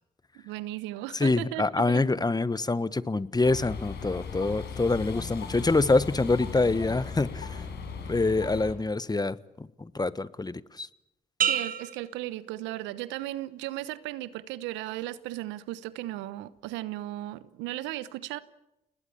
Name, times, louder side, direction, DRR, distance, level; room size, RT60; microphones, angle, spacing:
voice 1, 0.3-2.0 11.5-18.4, right 15 dB, 80° right, 1.0 m, -36 dB
voice 2, 1.1-7.7 8.1-10.9, left 3 dB, 20° left, 1.3 m, -26 dB
sound 1, 3.4-8.7, left 5 dB, 65° left, 5.6 m, -38 dB
sound 2, 11.4-13.2 13.7-14.1, right 8 dB, 50° right, 1.7 m, -32 dB
29.5 x 20.0 x 7.3 m
hypercardioid pair, 45°, 19 cm